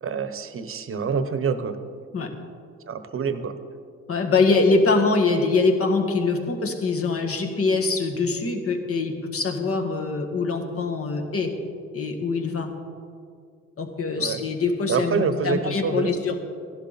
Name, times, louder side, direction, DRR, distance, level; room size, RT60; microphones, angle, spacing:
voice 1, 0.0-1.8 2.9-3.5 14.2-14.4 14.9-16.1, right 6 dB, 45° right, 10 dB, 1.0 m, -26 dB
voice 2, 4.1-11.5 11.9-12.7 13.8-16.4, left 3 dB, 50° left, 3 dB, 1.8 m, -23 dB
16.0 x 11.5 x 4.2 m, 2.3 s
cardioid pair, 90°, 30 cm